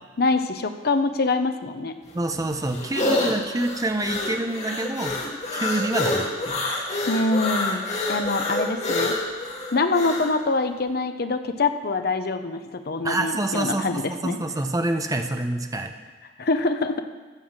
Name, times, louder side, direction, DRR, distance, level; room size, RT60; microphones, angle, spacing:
voice 1, 0.2-2.0 7.1-9.1 9.7-14.4 16.4-17.0, left 3 dB, 55° left, 8 dB, 0.7 m, -25 dB
sound 1, 2.1-10.3, left 2 dB, 35° left, 2.0 m, -27 dB
voice 2, 2.1-5.2 5.5-6.6 13.0-15.9, right 2 dB, 20° right, 6 dB, 0.7 m, -27 dB
14.5 x 5.7 x 7.3 m, 1.4 s
head